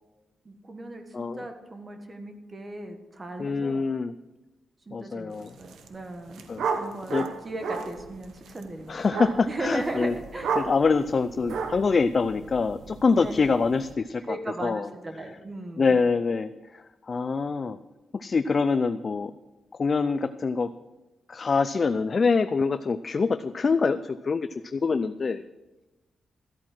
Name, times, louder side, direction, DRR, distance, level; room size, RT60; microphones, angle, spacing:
voice 1, 0.4-3.8 4.9-6.4 6.7-9.0 9.5-10.5 13.2-13.3 14.3-16.0, right 2 dB, 25° right, 5 dB, 1.6 m, -37 dB
voice 2, 1.1-1.4 3.4-4.1 4.9-5.5 6.5-6.7 7.1-7.3 8.9-10.1 10.6-14.4 14.6-14.9 15.8-17.8 18.1-19.3 19.8-20.7 21.3-25.4, left 4 dB, 35° left, 11 dB, 0.4 m, -25 dB
sound 1, 5.5-5.9 6.1-13.9, right 5 dB, 90° right, 1.1 m, -34 dB
13.5 x 8.7 x 6.0 m, 1.1 s
wide cardioid pair, 135°, 0 cm